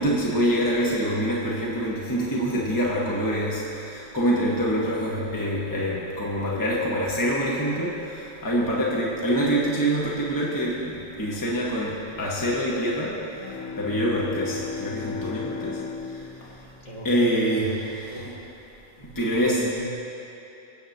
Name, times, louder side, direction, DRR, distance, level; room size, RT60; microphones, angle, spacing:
voice 1, 0.0-13.2 13.5-15.8 16.4-16.5 17.0-18.3 19.1-19.6, equal, 15° left, -5 dB, 1.3 m, -25 dB
Bowed string instrument, 13.3-17.8, left 5 dB, 85° left, 1.0 m, -36 dB
voice 2, 16.8-18.4 19.0-19.9, right 2 dB, 35° left, -4 dB, 1.6 m, -37 dB
23.0 x 8.4 x 2.8 m, 2.9 s
omnidirectional pair, 1.3 m